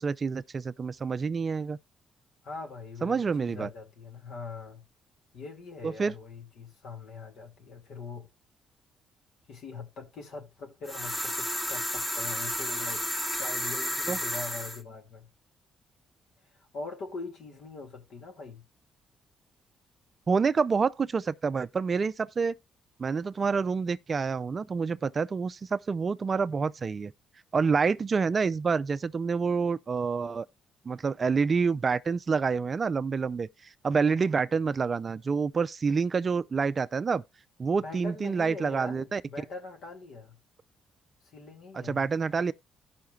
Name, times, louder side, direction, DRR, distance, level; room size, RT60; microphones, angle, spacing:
voice 1, 0.0-1.8 3.0-3.7 5.8-6.1 14.1-14.2 20.3-22.5 23.0-27.1 27.5-30.5 30.9-33.5 33.8-37.2 37.6-39.2 41.9-42.5, right 5 dB, 40° right, 0.4 m, -27 dB
voice 2, 2.4-4.8 5.3-8.3 9.5-13.1 13.4-15.3 16.6-18.6 37.8-40.4 41.2-42.1, left 4 dB, 75° left, 2.2 m, -42 dB
sound 1, 10.9-14.8, equal, 15° left, 1.1 m, -32 dB
16.0 x 5.7 x 2.4 m
cardioid pair, 90°, 0 cm